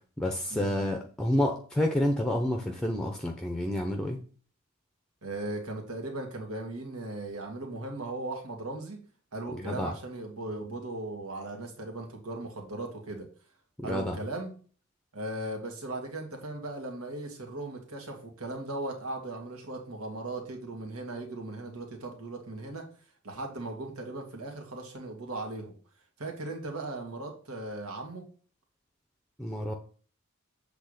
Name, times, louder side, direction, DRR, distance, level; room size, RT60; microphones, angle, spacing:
voice 1, 0.2-4.2 9.6-9.9 13.8-14.2 29.4-29.7, left 1 dB, 5° left, 4 dB, 0.7 m, -29 dB
voice 2, 5.2-9.0 9.3-13.3 13.8-14.5 15.1-22.9 23.2-25.7 26.2-28.2, right 2 dB, 80° right, 2 dB, 2.0 m, -38 dB
7.9 x 3.6 x 6.6 m, 0.41 s
head